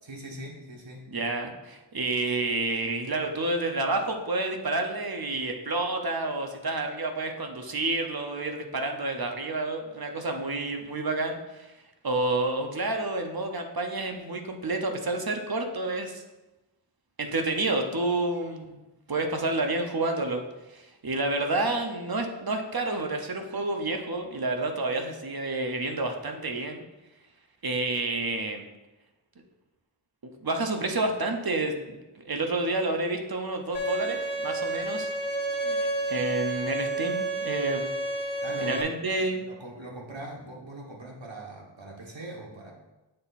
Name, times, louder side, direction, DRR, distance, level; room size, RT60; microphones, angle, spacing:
voice 1, 0.0-1.1 38.4-39.0 39.5-42.7, right 1 dB, 75° right, -2 dB, 1.4 m, -41 dB
voice 2, 1.1-11.7 12.0-16.2 17.2-18.8 19.1-20.4 20.7-26.8 27.6-28.6 30.4-32.0 32.3-35.1 35.6-37.8 38.6-39.5, right 2 dB, 50° right, 4 dB, 0.8 m, -29 dB
Bowed string instrument, 33.7-38.8, right 2 dB, 30° left, 1.3 m, -30 dB
7.7 x 3.5 x 4.1 m, 1.0 s
wide cardioid pair, 55°, 46 cm